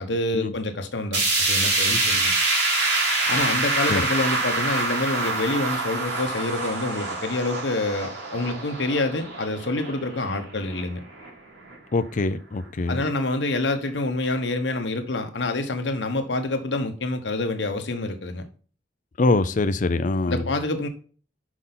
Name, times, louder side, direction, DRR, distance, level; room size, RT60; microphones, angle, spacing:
voice 1, 0.0-2.3 3.3-11.0 12.9-18.5 20.3-20.9, left 2 dB, 85° left, 1.1 m, -27 dB
sound 1, 1.1-11.3 11.7-11.8 12.2-12.3 13.1-13.2, right 2 dB, 80° right, 3.4 m, -25 dB
voice 2, 11.9-13.0 19.2-20.5, left 3 dB, 45° left, 0.5 m, -24 dB
6.3 x 5.4 x 3.8 m
head